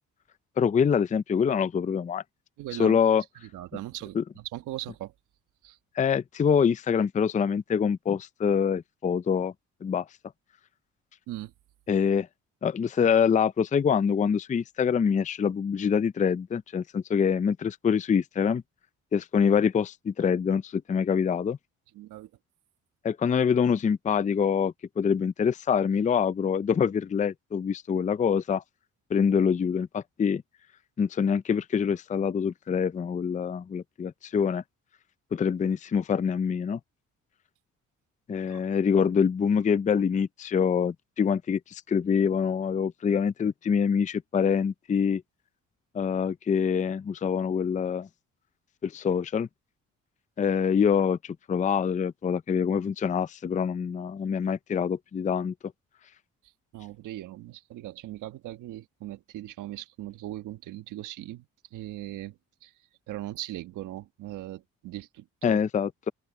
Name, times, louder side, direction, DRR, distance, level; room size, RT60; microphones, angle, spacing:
voice 1, 0.6-2.2 2.8-3.2 4.1-4.2 6.0-9.5 9.8-10.1 11.9-12.3 12.6-18.6 19.1-21.6 23.0-28.6 29.1-30.4 31.0-34.6 35.3-36.8 38.3-45.2 45.9-48.1 48.8-49.5 50.4-55.5 65.4-66.1, left 7 dB, 25° left, 0.5 m, -25 dB
voice 2, 2.6-3.0 3.5-5.1 5.6-5.8 11.3-11.5 21.9-22.3 38.5-38.6 56.7-61.4 61.7-62.7 63.1-65.6, right 15 dB, 90° right, 1.4 m, -39 dB
open air
cardioid pair, 90°, 30 cm